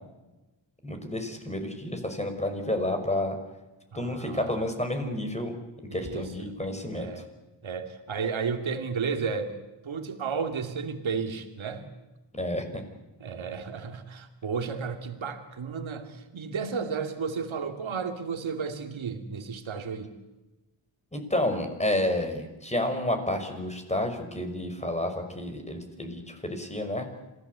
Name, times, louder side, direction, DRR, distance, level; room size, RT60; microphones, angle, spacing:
voice 1, 0.8-3.4 3.9-5.6 5.9-7.2 12.3-12.8 21.1-27.1, left 1 dB, 15° left, 5 dB, 5.8 m, -30 dB
voice 2, 3.9-4.7 5.9-6.5 6.9-7.3 7.6-9.5 9.8-11.8 13.2-20.1, right 5 dB, 75° right, 6 dB, 2.7 m, -33 dB
27.0 x 18.0 x 8.2 m, 1.1 s
cardioid pair, 70°, 47 cm